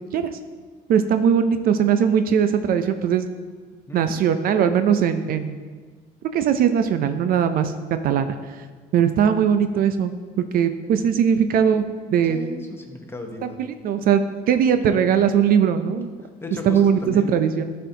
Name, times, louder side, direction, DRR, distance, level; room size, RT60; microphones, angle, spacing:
voice 1, 0.9-3.3 3.9-5.6 6.3-7.7 8.0-8.3 8.9-10.1 10.4-11.8 12.1-12.4 13.6-14.2 14.5-16.1 16.6-17.6, right 8 dB, 60° right, 9 dB, 0.4 m, -19 dB
voice 2, 3.9-4.2 12.3-13.6 16.4-17.4, left 3 dB, 15° left, 3 dB, 0.9 m, -35 dB
12.5 x 4.3 x 2.7 m, 1.5 s
cardioid pair, 110°, 17 cm